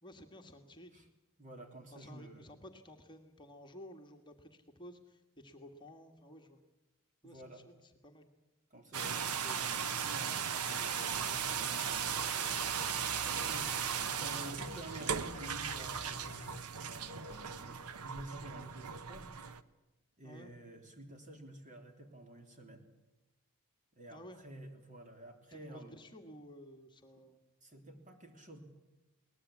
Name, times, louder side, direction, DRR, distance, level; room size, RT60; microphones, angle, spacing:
voice 1, 0.0-0.9 1.9-6.6 7.2-8.3 20.2-20.5 24.1-24.4 25.5-27.4, equal, 20° left, 3 dB, 1.6 m, -53 dB
voice 2, 1.4-2.5 7.2-7.6 8.7-16.3 16.8-19.3 20.2-22.8 23.9-25.9 27.6-28.6, right 1 dB, 35° right, 4 dB, 3.5 m, -51 dB
Shower Turning On, 8.9-19.6, right 7 dB, 85° right, 1.0 m, -37 dB
sound 1, 11.1-16.6, left 3 dB, 50° left, 0.9 m, -52 dB
21.5 x 19.5 x 8.6 m, 1.0 s
head